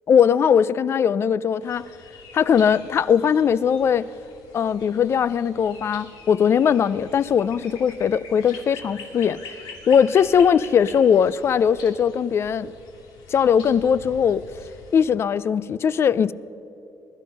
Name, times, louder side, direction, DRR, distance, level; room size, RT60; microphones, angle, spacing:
voice 1, 0.1-1.9 2.3-4.1 4.5-9.4 9.9-12.7 13.3-14.4 14.9-16.3, left 7 dB, 35° left, 0.3 m, -19 dB
sound 1, 1.6-15.0, left 4 dB, 80° left, 2.7 m, -44 dB
21.5 x 12.0 x 5.4 m
cardioid pair, 150°, 7 cm